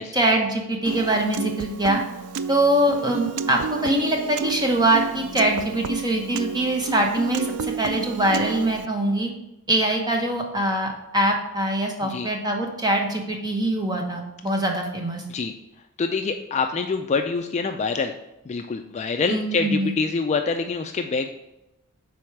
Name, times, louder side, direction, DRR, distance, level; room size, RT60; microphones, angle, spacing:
voice 1, 0.1-2.0 2.5-9.3 9.7-15.2 19.3-19.9, right 1 dB, 20° right, 2 dB, 0.9 m, -23 dB
Piano, 0.9-8.9, right 5 dB, 75° right, 0.3 m, -31 dB
voice 2, 16.0-18.1 18.5-21.3, left 4 dB, 30° left, 6 dB, 0.3 m, -25 dB
4.8 x 4.2 x 5.8 m, 0.90 s
head